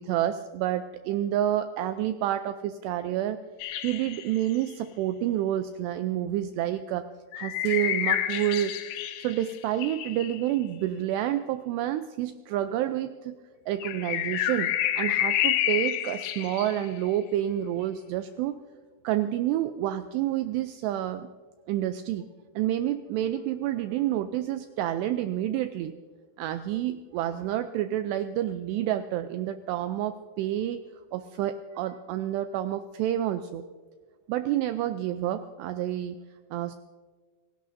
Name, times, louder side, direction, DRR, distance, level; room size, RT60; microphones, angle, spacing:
voice 1, 0.0-3.4 3.8-7.1 7.4-8.7 9.2-13.4 13.7-18.5 19.0-21.3 21.7-22.3 22.6-25.9 26.4-30.8 31.1-33.6 34.3-36.2 36.5-36.8, right 12 dB, 85° right, 9 dB, 2.4 m, -29 dB
sound 1, 3.6-4.6 7.3-10.5 13.8-17.1, left 11 dB, 85° left, 3.3 m, -29 dB
27.5 x 17.0 x 2.6 m, 1.4 s
omnidirectional pair, 5.4 m